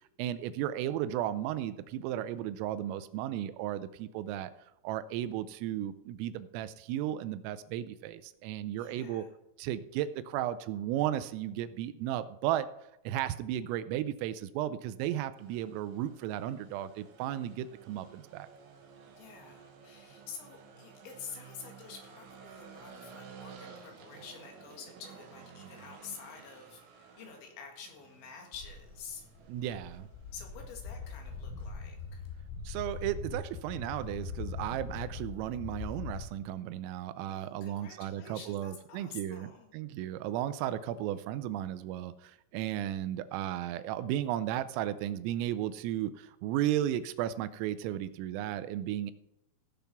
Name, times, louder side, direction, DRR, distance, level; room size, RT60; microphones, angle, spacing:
voice 1, 0.2-4.5 4.8-9.2 9.6-12.7 13.1-18.5 29.5-30.1 32.7-49.1, right 12 dB, 85° right, 14 dB, 3.3 m, -34 dB
voice 2, 8.8-9.3 19.2-29.2 30.3-32.2 37.3-39.8, left 6 dB, 65° left, 2 dB, 4.1 m, -48 dB
sound 1, 15.4-35.2, right 6 dB, 70° right, 3.9 m, -55 dB
Walk footsteps, 28.5-36.2, left 4 dB, 85° left, 5.2 m, -42 dB
16.5 x 7.0 x 5.9 m, 0.84 s
omnidirectional pair, 5.9 m